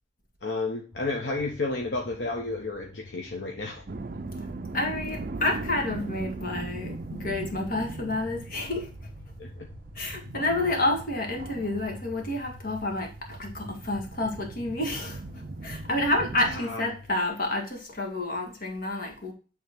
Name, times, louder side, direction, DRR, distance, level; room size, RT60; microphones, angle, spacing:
voice 1, 0.4-3.8 9.4-9.7 16.4-16.8, left 3 dB, 70° left, 1.0 m, -32 dB
sound 1, 0.9-17.1, left 2 dB, 5° right, 2.5 m, -49 dB
sound 2, 3.9-16.6, right 3 dB, 50° right, 0.5 m, -39 dB
voice 2, 4.7-8.9 10.0-19.3, left 2 dB, 55° left, 1.8 m, -29 dB
9.2 x 3.6 x 3.6 m
head